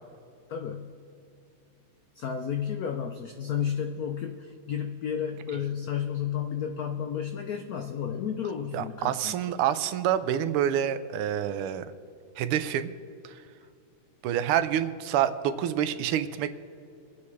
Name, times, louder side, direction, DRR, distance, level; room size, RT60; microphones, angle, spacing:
voice 1, 0.5-0.9 2.2-9.6, left 8 dB, 90° left, 5 dB, 0.8 m, -32 dB
voice 2, 8.7-11.8 12.4-12.9 13.2-13.3 14.2-16.5, right 10 dB, 85° right, 11 dB, 1.6 m, -27 dB
25.0 x 8.4 x 3.2 m, 2.6 s
omnidirectional pair, 2.4 m